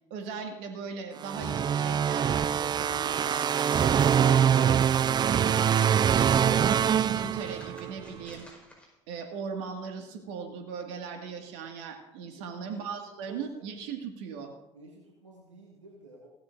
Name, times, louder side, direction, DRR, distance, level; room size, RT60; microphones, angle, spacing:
voice 1, 0.1-4.8 5.2-5.7 6.1-8.5 9.1-14.5, right 6 dB, 70° right, 4 dB, 2.0 m, -38 dB
sound 1, 1.2-7.9, right 8 dB, 30° right, 0.3 m, -24 dB
sound 2, 3.0-8.9, left 1 dB, 5° left, 4.9 m, -50 dB
voice 2, 12.4-12.8 13.3-13.6 14.7-16.3, right 1 dB, 90° right, -1 dB, 1.5 m, -52 dB
16.5 x 13.0 x 2.6 m, 0.93 s
hypercardioid pair, 60°, 15 cm